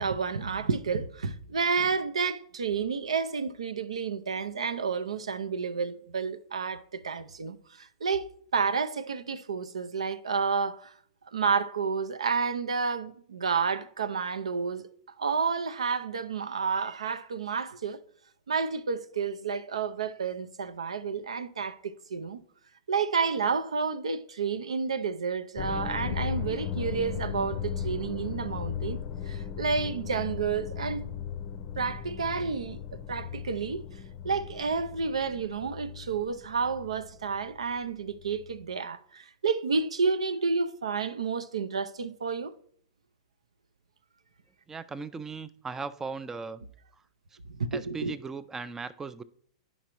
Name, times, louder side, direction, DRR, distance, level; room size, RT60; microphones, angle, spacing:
voice 1, 0.0-8.3 8.5-10.9 11.3-14.9 15.2-18.0 18.5-22.4 22.9-29.0 29.3-31.1 31.8-33.8 34.2-42.5 47.5-48.1, right 5 dB, 90° right, 0.5 m, -30 dB
sound 1, 25.6-37.7 38.1-38.6, left 8 dB, 45° left, 0.5 m, -37 dB
voice 2, 44.7-46.6 47.7-49.2, right 4 dB, 15° right, 0.3 m, -38 dB
11.0 x 5.2 x 3.0 m
hypercardioid pair, 115°, 3 cm